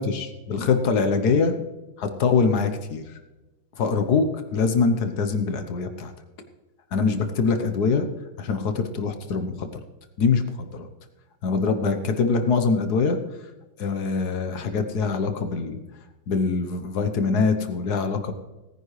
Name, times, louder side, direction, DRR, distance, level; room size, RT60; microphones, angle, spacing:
voice 1, 0.0-1.5 2.0-3.0 3.8-6.1 6.9-8.1 8.4-9.7 10.2-10.9 11.4-13.2 13.8-15.8 16.3-18.3, left 4 dB, 55° left, 7 dB, 1.4 m, -23 dB
18.5 x 9.8 x 3.2 m, 1.1 s
omnidirectional pair, 2.3 m